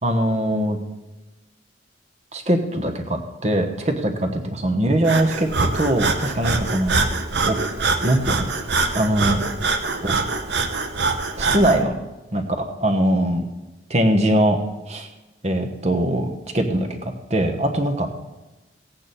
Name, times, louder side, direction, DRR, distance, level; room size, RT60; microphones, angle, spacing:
voice 1, 0.0-0.8 2.3-6.9 7.4-7.6 8.0-8.5 8.9-9.4 10.0-10.1 11.4-12.0 12.3-13.5 13.9-14.6 14.9-15.1 15.4-16.3 16.5-18.2, right 1 dB, 35° right, 5 dB, 1.2 m, -21 dB
Breathing, 5.0-11.8, right 3 dB, 70° right, 0.9 m, -24 dB
16.5 x 8.5 x 4.2 m, 1.1 s
head